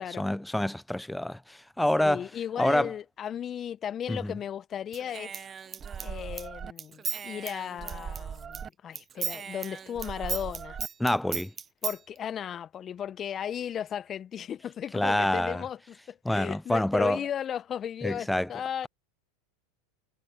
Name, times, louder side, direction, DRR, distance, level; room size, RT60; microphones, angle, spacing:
voice 1, 0.0-2.3 2.6-2.9 4.1-4.4 11.0-11.5 14.9-15.6 16.2-17.3 18.0-18.5, left 1 dB, 5° left, 0.7 m, -27 dB
voice 2, 2.0-5.4 6.0-10.8 11.8-15.8 16.1-18.9, left 9 dB, 35° left, 1.1 m, -35 dB
Human voice / Scissors, 4.9-8.7 8.9-12.0, right 7 dB, 25° right, 1.2 m, -36 dB
hypercardioid pair, 95°, 0 cm